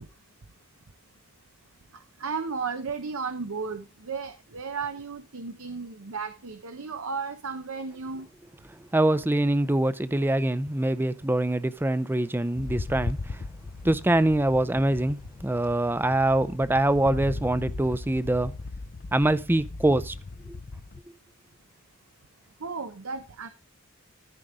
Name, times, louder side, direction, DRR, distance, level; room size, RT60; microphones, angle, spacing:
voice 1, 2.2-8.3 22.6-23.5, right 5 dB, 85° right, 0.9 m, -34 dB
voice 2, 8.9-13.4 13.8-18.5 19.1-20.1 20.5-20.6, right 1 dB, 10° right, 0.5 m, -24 dB
sound 1, 12.5-21.0, left 3 dB, 40° left, 0.5 m, -38 dB
14.0 x 5.2 x 4.8 m
head